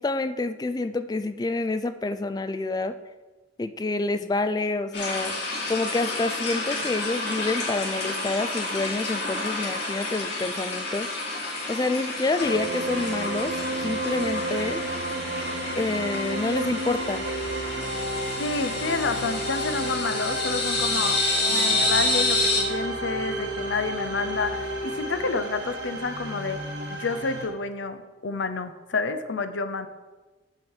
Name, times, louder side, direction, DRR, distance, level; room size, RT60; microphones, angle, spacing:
voice 1, 0.0-2.9 3.6-5.3 5.7-11.1 11.7-13.6 13.8-14.8 15.8-17.3, left 2 dB, 20° left, 11 dB, 0.3 m, -28 dB
sound 1, 4.9-22.6, left 2 dB, 60° left, 3.1 m, -29 dB
sound 2, 12.4-27.5, right 1 dB, 70° right, 1.4 m, -31 dB
voice 2, 18.4-21.2 21.5-26.6 26.9-29.9, left 4 dB, 80° left, 9 dB, 0.7 m, -29 dB
7.6 x 4.8 x 7.3 m, 1.2 s
head